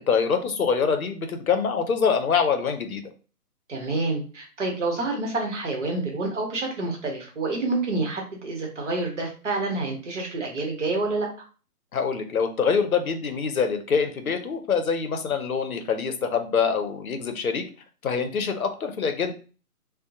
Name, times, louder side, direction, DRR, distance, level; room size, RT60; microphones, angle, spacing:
voice 1, 0.1-3.0 11.9-17.6 18.0-19.3, left 6 dB, 65° left, 7 dB, 0.6 m, -25 dB
voice 2, 3.7-11.3, right 3 dB, 50° right, 1 dB, 0.9 m, -28 dB
2.7 x 2.1 x 2.5 m, 0.37 s
figure-of-eight pair, 145°, 47 cm